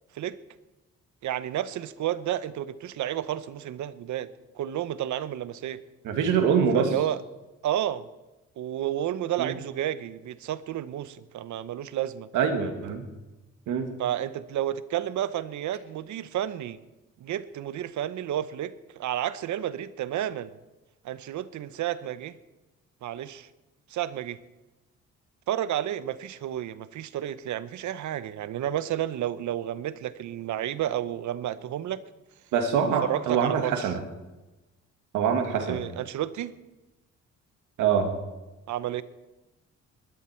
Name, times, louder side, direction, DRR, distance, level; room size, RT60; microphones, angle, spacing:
voice 1, 1.2-4.3 4.5-5.8 6.7-7.2 7.6-8.1 8.6-12.3 14.0-16.8 17.2-20.6 21.0-22.4 23.0-23.5 23.9-24.4 25.5-32.0 32.8-33.9 35.6-36.6 38.7-39.0, right 11 dB, 70° right, 15 dB, 0.9 m, -31 dB
voice 2, 6.0-6.9 9.4-9.5 12.3-13.0 13.7-13.9 32.5-34.0 35.1-35.8 37.8-38.1, right 7 dB, 90° right, 5 dB, 2.2 m, -24 dB
20.5 x 12.5 x 4.5 m, 1.1 s
cardioid pair, 90°, 30 cm